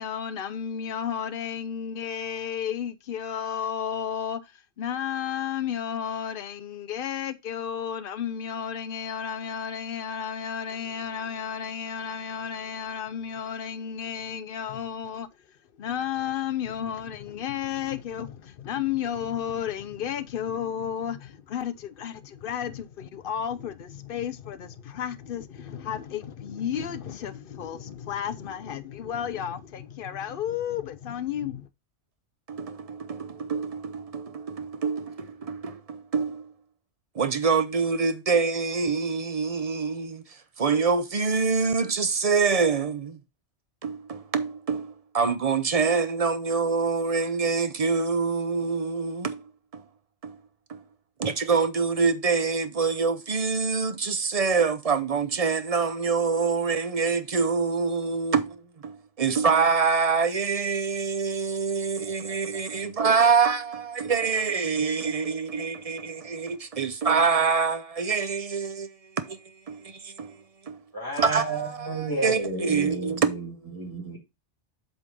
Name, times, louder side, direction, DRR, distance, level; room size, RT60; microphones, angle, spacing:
voice 1, 0.0-15.3 15.8-31.7, left 8 dB, 55° left, 0.8 m, -32 dB
voice 2, 32.5-36.5 37.2-40.2 40.6-43.2 43.8-49.4 49.7-49.8 50.2-50.4 50.7-50.8 51.2-68.9 69.2-69.4 69.7-70.4 70.7-70.8 71.2-73.5, right 5 dB, 40° right, 0.6 m, -25 dB
voice 3, 70.9-74.2, right 2 dB, 15° right, 2.3 m, -31 dB
7.9 x 3.6 x 5.2 m
omnidirectional pair, 1.2 m